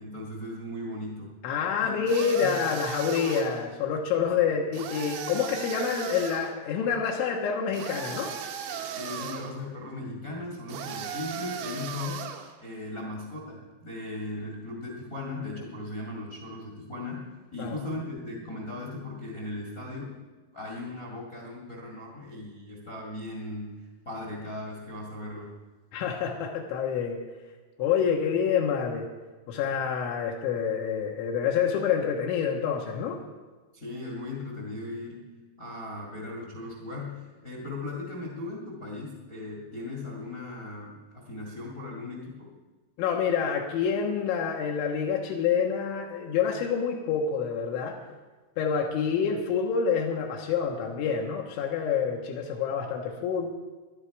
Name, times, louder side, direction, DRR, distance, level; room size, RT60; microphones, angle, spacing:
voice 1, 0.0-1.3 1.8-2.0 2.4-2.6 4.2-4.5 8.9-12.3 12.6-20.1 20.5-25.5 33.7-42.5, left 2 dB, 45° left, -1 dB, 1.1 m, -38 dB
voice 2, 1.4-8.3 17.6-17.8 25.9-27.2 27.8-29.1 29.5-33.2 43.0-48.0 48.6-53.5, left 7 dB, 85° left, 0 dB, 3.6 m, -27 dB
sound 1, 2.1-3.6 4.7-6.5 7.7-9.5 10.7-12.5, right 8 dB, 75° right, 3.5 m, -37 dB
19.5 x 11.5 x 4.8 m, 1.3 s
omnidirectional pair, 5.4 m